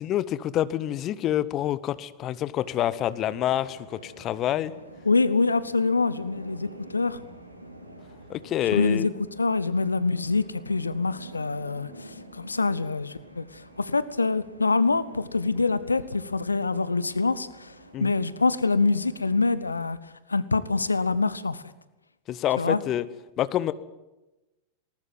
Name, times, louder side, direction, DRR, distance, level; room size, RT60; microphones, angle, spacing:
voice 1, 0.0-4.7 8.3-9.1 17.9-18.1 22.3-23.0 23.4-23.7, left 12 dB, 35° left, 16 dB, 1.1 m, -27 dB
sound 1, 2.6-19.9, right 1 dB, 85° right, 3.5 m, -48 dB
voice 2, 5.0-7.2 8.7-9.1 9.4-20.0 20.3-21.6 22.6-22.8, left 3 dB, 80° left, 16 dB, 0.9 m, -25 dB
19.5 x 19.0 x 9.4 m, 1.0 s
figure-of-eight pair, 90°, 0 cm